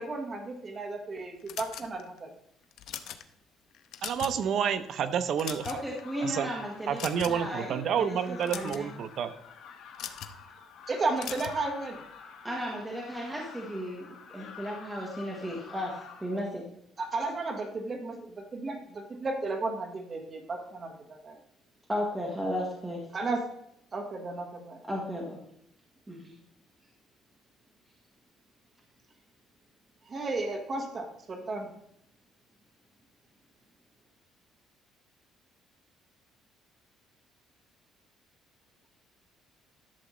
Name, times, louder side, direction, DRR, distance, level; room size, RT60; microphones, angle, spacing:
voice 1, 0.0-2.3 10.9-12.0 17.0-18.2 18.5-21.4 23.1-23.5 23.9-24.8 30.1-31.7, right 3 dB, 30° right, 3 dB, 1.3 m, -33 dB
sound 1, 1.5-2.2 2.7-3.2 3.7-4.4 4.7-4.9 5.3-6.0 7.0-7.5 8.3-8.8 9.9-10.4 11.2-11.6, left 10 dB, 65° left, 0.6 m, -39 dB
voice 2, 4.0-5.7 6.2-6.5 6.9-9.3, right 8 dB, 50° right, 11 dB, 0.6 m, -29 dB
sound 2, 5.6-16.4, left 6 dB, 90° left, 3.0 m, -49 dB
voice 3, 5.6-7.0 7.3-8.9 12.4-16.6 21.9-23.1 24.9-25.4 26.1-26.3, equal, 10° right, -2 dB, 1.2 m, -35 dB
11.5 x 7.0 x 3.1 m, 0.73 s
cardioid pair, 155°, 0 cm